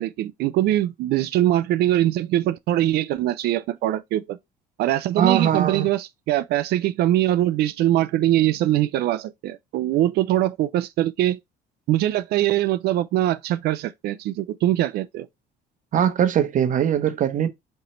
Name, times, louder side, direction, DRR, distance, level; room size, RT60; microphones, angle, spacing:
voice 1, 0.0-4.4 4.8-11.4 11.9-15.3, right 13 dB, 70° right, 0.4 m, -22 dB
voice 2, 5.2-5.9 15.9-17.5, right 9 dB, 50° right, 0.8 m, -21 dB
5.3 x 2.9 x 3.0 m
cardioid pair, 110°, 17 cm